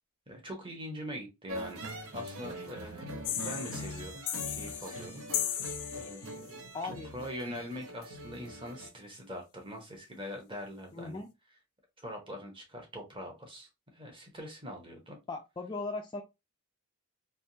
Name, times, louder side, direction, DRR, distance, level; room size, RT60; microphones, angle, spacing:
voice 1, 0.3-1.8 2.1-11.2 12.0-15.2, equal, 25° right, 2 dB, 1.1 m, -43 dB
sound 1, 1.5-8.9, equal, 65° right, 0.9 m, -42 dB
sound 2, 3.2-6.5, left 11 dB, 80° left, 0.5 m, -36 dB
voice 2, 6.7-7.1 10.9-11.3 15.3-16.2, left 3 dB, 20° left, 4 dB, 0.3 m, -38 dB
3.5 x 2.6 x 2.7 m, 0.23 s
head